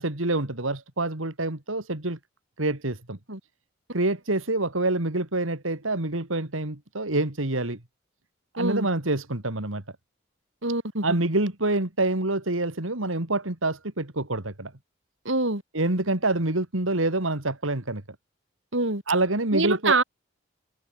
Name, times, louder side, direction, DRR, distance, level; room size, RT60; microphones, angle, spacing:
voice 1, 0.0-2.2 2.6-3.2 3.9-7.8 8.5-9.8 11.0-14.7 15.7-18.0 19.1-19.9, right 2 dB, 90° right, 2.8 m, -26 dB
voice 2, 8.6-8.9 10.6-11.2 15.2-15.6 18.7-19.0 19.5-20.0, right 2 dB, 75° right, 5.1 m, -25 dB
head